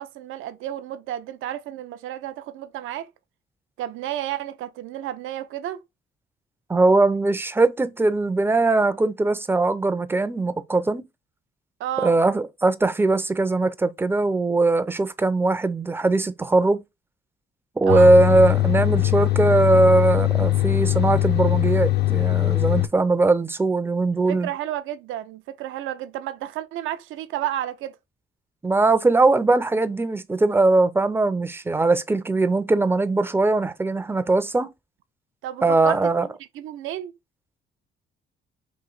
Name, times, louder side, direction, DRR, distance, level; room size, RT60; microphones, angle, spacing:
voice 1, 0.0-3.1 3.8-5.8 11.8-12.2 17.9-18.1 24.3-28.0 35.4-36.0 36.5-37.1, right 12 dB, 80° right, 0.5 m, -31 dB
voice 2, 6.7-11.0 12.0-16.8 17.8-24.5 28.6-34.7 35.6-36.3, right 2 dB, 10° right, 0.4 m, -20 dB
sound 1, 17.9-22.9, left 16 dB, 55° left, 0.5 m, -21 dB
3.0 x 2.7 x 3.8 m
cardioid pair, 90°, 20 cm